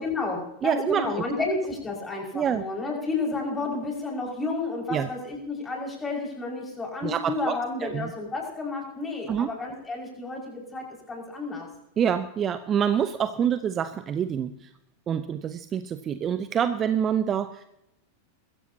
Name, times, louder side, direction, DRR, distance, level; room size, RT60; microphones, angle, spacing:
voice 1, 0.0-11.7, left 3 dB, 15° left, -1 dB, 5.5 m, -31 dB
voice 2, 0.6-1.1 2.3-2.6 4.9-5.1 7.0-7.5 7.8-8.1 9.3-9.5 12.0-14.7 15.1-17.6, right 8 dB, 25° right, 11 dB, 0.7 m, -26 dB
22.0 x 15.5 x 2.8 m, 0.84 s
figure-of-eight pair, 90°, 0 cm